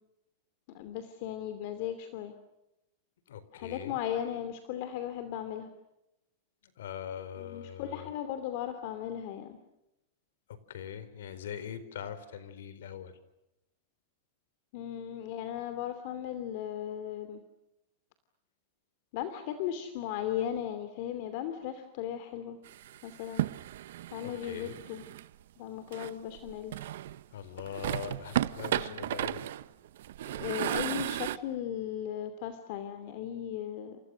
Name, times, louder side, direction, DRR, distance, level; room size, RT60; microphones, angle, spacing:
voice 1, 0.7-2.3 3.5-5.7 7.4-9.6 14.7-17.4 19.1-22.6 23.0-23.4 24.1-25.0 25.6-26.7 28.6-29.0 30.3-34.0, left 10 dB, 45° left, 9 dB, 2.7 m, -37 dB
voice 2, 3.3-4.0 6.6-8.1 10.7-13.1 24.2-24.8 27.3-29.5, left 9 dB, 85° left, 13 dB, 4.2 m, -42 dB
sound 1, 22.7-25.2 25.9-27.2 27.6-31.4, right 13 dB, 70° right, 0.9 m, -34 dB
29.5 x 29.0 x 6.4 m, 0.89 s
supercardioid pair, 165°, 0 cm